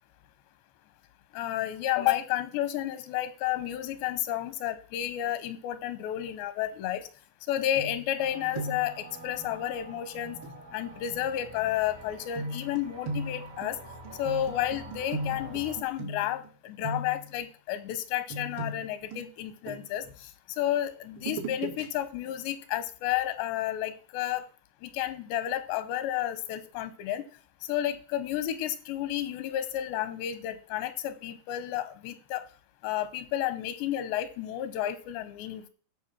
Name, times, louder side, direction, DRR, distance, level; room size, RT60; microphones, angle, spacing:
voice 1, 1.3-7.1 7.5-10.4 10.7-13.8 14.2-20.3 20.6-24.5 24.8-27.2 27.7-32.4 32.8-35.7, left 12 dB, 85° left, 13 dB, 3.0 m, -31 dB
sound 1, 7.8-8.3 8.5-9.0 10.4-10.6 12.4-16.5 16.8-17.4 18.3-20.1 21.2-21.9 22.2-22.4, right 2 dB, 80° right, 4.3 m, -37 dB
sound 2, 8.2-15.8, right 2 dB, 60° right, 0.9 m, -47 dB
15.0 x 5.3 x 7.2 m, 0.41 s
omnidirectional pair, 5.0 m